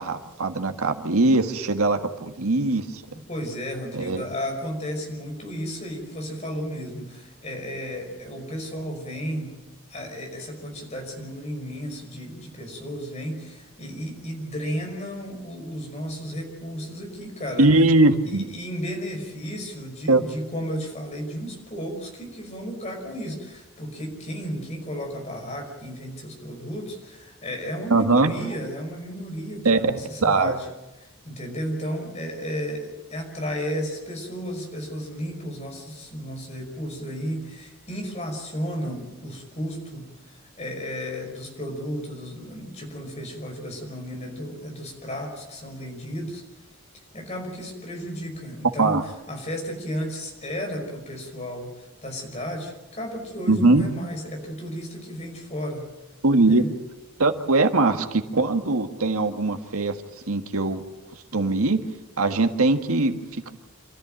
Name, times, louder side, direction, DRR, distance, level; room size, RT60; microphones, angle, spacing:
voice 1, 0.0-3.0 3.9-4.2 17.6-18.4 20.1-20.2 27.9-28.3 29.6-29.8 30.2-30.5 48.8-49.0 53.5-53.9 56.2-56.6 57.2-60.0 60.3-60.8 61.3-61.8 62.2-63.5, right 2 dB, 80° right, 6 dB, 1.7 m, -21 dB
voice 2, 3.3-9.6 9.9-17.7 18.3-30.7 31.2-46.4 47.1-55.9 56.4-56.7, equal, 30° left, 2 dB, 5.4 m, -33 dB
27.0 x 14.0 x 9.1 m, 1.0 s
head